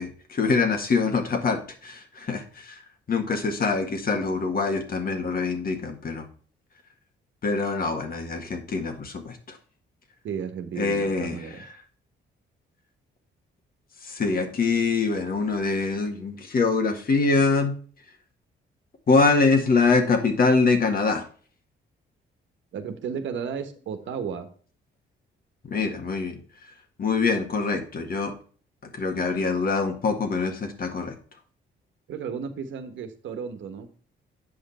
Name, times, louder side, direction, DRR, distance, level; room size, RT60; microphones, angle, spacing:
voice 1, 0.0-2.8 3.1-6.3 7.4-9.6 10.8-11.4 14.0-17.8 19.1-21.2 25.7-26.4 27.0-28.3 28.9-31.2, left 4 dB, 45° left, 5 dB, 1.8 m, -24 dB
voice 2, 10.2-11.6 22.7-24.5 32.1-34.0, right 7 dB, 70° right, 8 dB, 1.2 m, -33 dB
8.7 x 5.3 x 4.2 m, 0.43 s
cardioid pair, 90°, 20 cm